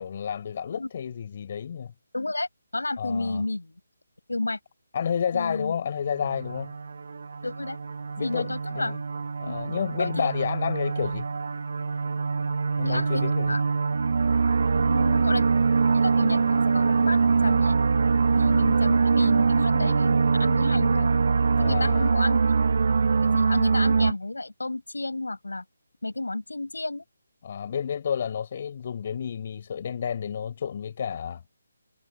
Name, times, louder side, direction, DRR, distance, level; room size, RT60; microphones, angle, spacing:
voice 1, 0.0-1.9 3.0-3.4 4.9-6.7 8.2-9.0 9.4-11.3 12.8-13.6 21.5-22.1 27.4-31.4, left 7 dB, 40° left, 5.0 m, -30 dB
voice 2, 2.1-2.5 2.7-3.8 4.3-4.6 5.3-5.7 7.4-7.8 8.2-8.9 9.5-9.6 10.0-10.3 12.8-13.6 14.7-15.5 15.9-17.8 18.3-21.1 21.6-22.4 23.2-25.6 26.0-27.0, left 2 dB, 80° left, 7.2 m, -31 dB
sound 1, 6.0-24.1, right 4 dB, 55° right, 1.4 m, -23 dB
figure-of-eight pair, 150°, 0 cm